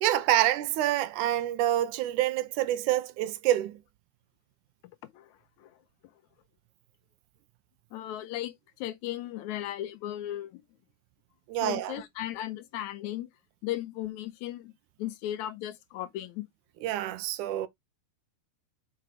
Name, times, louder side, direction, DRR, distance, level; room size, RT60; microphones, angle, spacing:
voice 1, 0.0-3.8 11.5-12.0 16.8-17.7, right 13 dB, 85° right, 2.2 m, -27 dB
voice 2, 7.9-8.6 8.8-10.6 11.6-13.3 13.6-14.7 15.0-16.4, left 13 dB, 80° left, 1.9 m, -36 dB
5.8 x 4.9 x 4.6 m
omnidirectional pair, 3.6 m